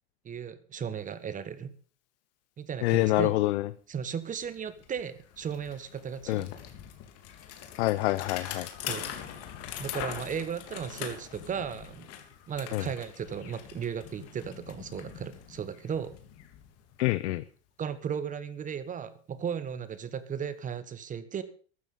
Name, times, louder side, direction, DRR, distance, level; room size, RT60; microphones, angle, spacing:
voice 1, 0.2-1.7 2.6-3.3 3.9-6.5 8.9-9.1 9.8-12.1 12.5-16.1 17.8-21.4, right 7 dB, 25° right, 14 dB, 1.3 m, -35 dB
voice 2, 2.8-3.7 6.3-6.5 7.8-8.7 12.7-12.9 17.0-17.4, left 18 dB, 75° left, 16 dB, 0.8 m, -26 dB
Bicycle, 4.0-4.1 4.4-17.3, left 9 dB, 45° left, 3.3 m, -43 dB
14.0 x 13.0 x 5.5 m, 0.42 s
supercardioid pair, 130°, 34 cm